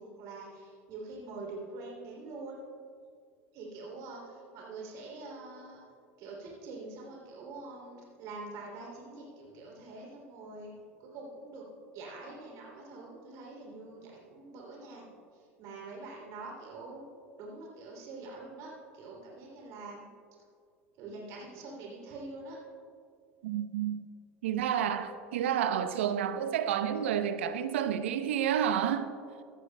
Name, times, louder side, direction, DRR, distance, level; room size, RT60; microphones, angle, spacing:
voice 1, 0.0-2.6 3.5-5.8 6.2-10.7 11.0-11.7 11.9-15.1 15.3-17.1 17.4-20.1 21.0-22.6, right 3 dB, 55° right, 2.9 m, -45 dB
voice 2, 23.4-24.1 24.4-29.1, right 9 dB, 75° right, 0.6 m, -30 dB
16.0 x 13.0 x 2.2 m
hypercardioid pair, 80°, 7 cm